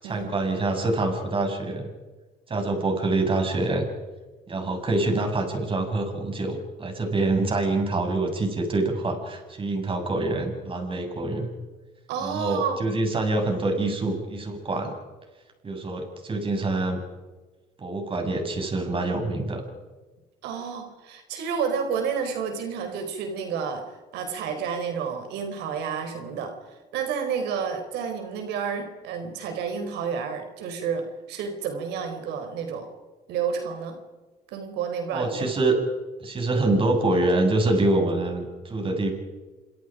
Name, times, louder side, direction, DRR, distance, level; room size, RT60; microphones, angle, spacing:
voice 1, 0.0-1.9 2.5-3.9 4.5-11.5 12.2-14.9 15.6-17.0 17.8-19.6 35.1-35.8 36.2-39.1, right 2 dB, 30° right, 4 dB, 7.4 m, -25 dB
voice 2, 12.1-12.8 20.4-23.8 24.1-32.9 33.3-34.0 34.5-35.5, right 6 dB, 85° right, 6 dB, 4.7 m, -30 dB
28.5 x 26.5 x 5.2 m, 1.2 s
cardioid pair, 110°, 17 cm